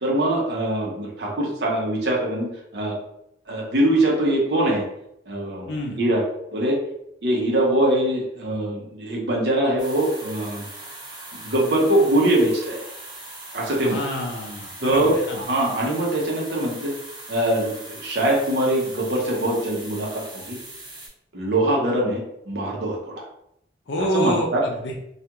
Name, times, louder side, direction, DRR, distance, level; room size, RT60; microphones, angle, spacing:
voice 1, 0.0-2.5 2.7-3.0 3.5-4.8 5.3-6.2 6.5-6.8 7.2-10.7 11.4-12.8 13.5-14.0 14.8-16.9 17.3-20.6 21.3-23.2 24.1-24.6, right 1 dB, 65° right, -2 dB, 0.8 m, -22 dB
voice 2, 5.7-6.0 13.8-15.4 23.9-25.0, equal, 75° left, 0 dB, 0.5 m, -27 dB
sound 1, 9.8-21.1, right 2 dB, 25° right, 0.9 m, -40 dB
2.4 x 2.3 x 2.9 m, 0.78 s
head